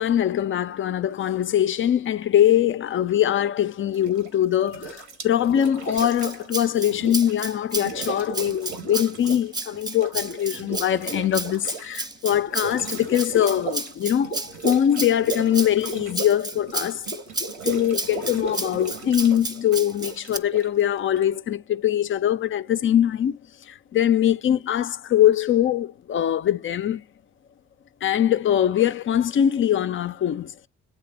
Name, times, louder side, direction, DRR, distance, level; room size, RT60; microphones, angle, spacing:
voice 1, 0.0-17.0 17.6-23.4 23.9-27.0 28.0-30.5, left 10 dB, 35° left, 0.4 m, -22 dB
sound 1, 3.9-4.4 4.7-7.4 7.7-9.5 9.7-21.2, right 3 dB, 80° right, 1.2 m, -35 dB
Rattle (instrument), 6.0-20.4, right 2 dB, 10° right, 0.5 m, -32 dB
8.4 x 3.2 x 4.4 m
hypercardioid pair, 40°, 34 cm